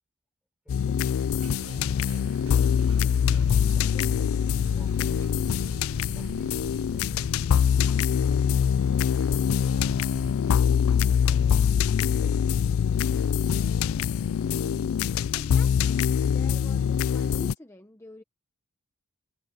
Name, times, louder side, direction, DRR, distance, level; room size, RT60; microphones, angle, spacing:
voice 1, 0.6-1.3 1.8-3.3 3.7-5.5 6.0-7.5 8.2-8.8 9.1-10.2 10.4-10.8 11.1-11.6 12.2-13.1, equal, 5° right, 4.1 m, -57 dB
sound 1, 0.7-17.5, left 7 dB, 80° left, 0.3 m, -24 dB
sound 2, 1.4-10.3, right 4 dB, 85° right, 0.6 m, -45 dB
voice 2, 15.3-18.2, left 1 dB, 15° left, 1.1 m, -47 dB
head